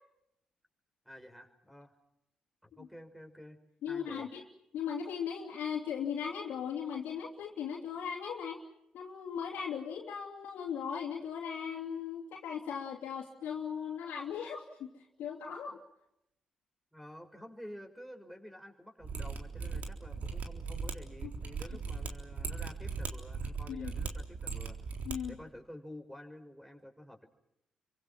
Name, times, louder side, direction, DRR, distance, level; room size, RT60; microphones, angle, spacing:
voice 1, 1.0-1.9 2.6-3.6 3.9-4.3 16.9-24.8 25.3-27.3, equal, ahead, 6 dB, 6.0 m, -50 dB
voice 2, 3.8-4.4 4.7-8.6 8.9-15.8 21.2-21.3 23.7-23.9 25.0-25.3, left 7 dB, 70° left, -4 dB, 3.0 m, -38 dB
Mechanisms, 19.0-25.2 25.4-25.5, right 5 dB, 60° right, 3.8 m, -38 dB
30.0 x 24.5 x 6.0 m, 0.81 s
hypercardioid pair, 45°, 3 cm